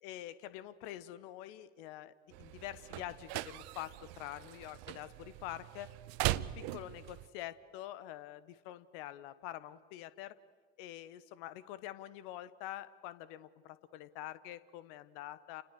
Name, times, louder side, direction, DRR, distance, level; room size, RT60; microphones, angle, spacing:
voice 1, 0.0-5.9 6.3-10.3 10.8-15.6, left 13 dB, 60° left, 16 dB, 1.2 m, -46 dB
sound 1, 2.3-7.3, right 18 dB, 55° right, 0.8 m, -40 dB
30.0 x 29.0 x 6.7 m, 1.6 s
figure-of-eight pair, 55°, 30 cm